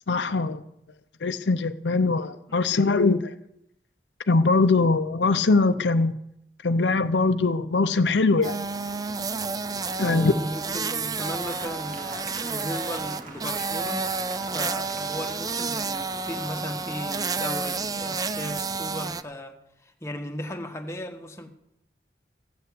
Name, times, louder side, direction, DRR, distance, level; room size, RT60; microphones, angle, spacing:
voice 1, 0.1-0.6 1.2-3.3 4.3-6.2 6.6-8.6 10.0-10.3, left 3 dB, 85° left, 0.7 m, -22 dB
sound 1, 8.4-19.2, right 4 dB, 20° right, 0.5 m, -30 dB
voice 2, 10.0-21.5, equal, 15° left, 1.4 m, -36 dB
Cheering / Applause, 11.4-17.2, right 3 dB, 50° right, 2.2 m, -46 dB
15.5 x 6.8 x 8.4 m
head